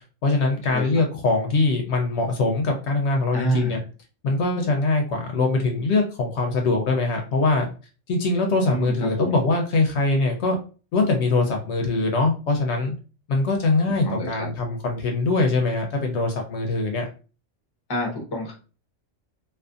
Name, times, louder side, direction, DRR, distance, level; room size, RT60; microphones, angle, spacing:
voice 1, 0.2-3.8 4.2-7.7 8.1-10.6 10.9-12.9 13.3-17.1, left 3 dB, 70° left, 2 dB, 0.8 m, -22 dB
voice 2, 3.3-3.8 8.7-9.4 14.0-14.5 17.9-18.5, right 1 dB, 25° left, 0 dB, 0.6 m, -27 dB
2.5 x 2.4 x 2.4 m, 0.35 s
omnidirectional pair, 1.3 m